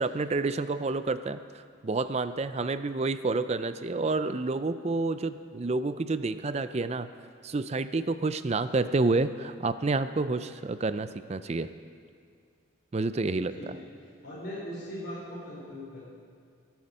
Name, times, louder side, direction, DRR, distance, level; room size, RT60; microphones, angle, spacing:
voice 1, 0.0-7.1 7.4-11.7 12.9-13.7, right 3 dB, 30° right, 12 dB, 0.4 m, -29 dB
voice 2, 14.2-16.1, equal, 50° left, -7 dB, 3.9 m, -39 dB
23.0 x 9.3 x 5.5 m, 2.2 s
head